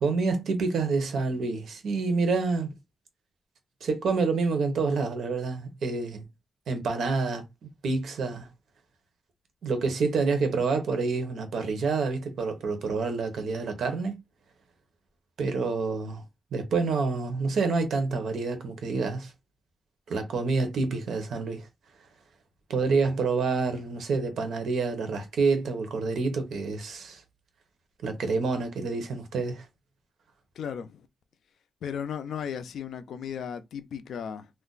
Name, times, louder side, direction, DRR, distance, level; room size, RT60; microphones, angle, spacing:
voice 1, 0.0-2.7 3.8-6.3 6.7-7.4 7.8-8.5 9.6-14.2 15.4-16.2 16.5-19.3 20.1-21.7 22.7-27.2 28.0-29.6, right 4 dB, 70° right, 0.7 m, -28 dB
voice 2, 30.6-31.1 31.8-34.5, left 8 dB, 75° left, 0.4 m, -35 dB
2.4 x 2.2 x 3.8 m
wide cardioid pair, 170°, 0 cm